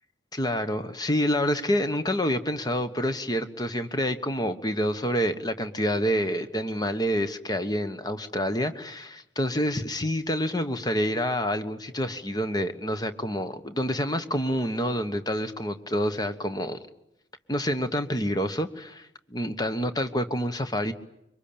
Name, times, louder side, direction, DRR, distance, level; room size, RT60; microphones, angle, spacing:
voice 1, 0.3-16.8 17.5-20.9, equal, 20° left, 9 dB, 1.3 m, -27 dB
26.0 x 24.0 x 8.8 m, 0.81 s
head